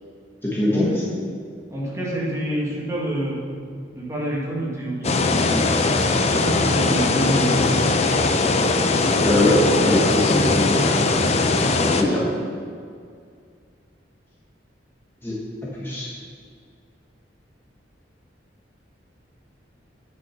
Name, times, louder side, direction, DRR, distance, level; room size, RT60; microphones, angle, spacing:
voice 1, 0.4-0.9 9.2-10.9 11.8-12.3 15.2-15.4 15.8-16.1, left 1 dB, 15° left, -7 dB, 1.2 m, -21 dB
voice 2, 1.7-3.4 3.9-5.8 6.1-7.8, right 1 dB, 15° right, -5 dB, 2.0 m, -27 dB
sound 1, 5.0-12.0, left 3 dB, 35° left, 0.6 m, -20 dB
8.9 x 5.9 x 5.9 m, 2.2 s
head